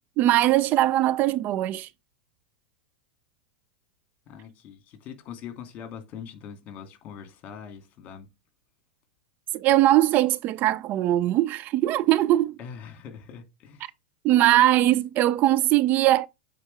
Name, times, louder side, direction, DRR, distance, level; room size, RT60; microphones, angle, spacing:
voice 1, 0.2-1.9 9.5-12.5 14.2-16.3, right 14 dB, 40° right, 0.4 m, -21 dB
voice 2, 4.3-8.3 12.6-13.9, left 7 dB, 40° left, 2.6 m, -42 dB
8.0 x 4.6 x 3.5 m
hypercardioid pair, 100°, 5 cm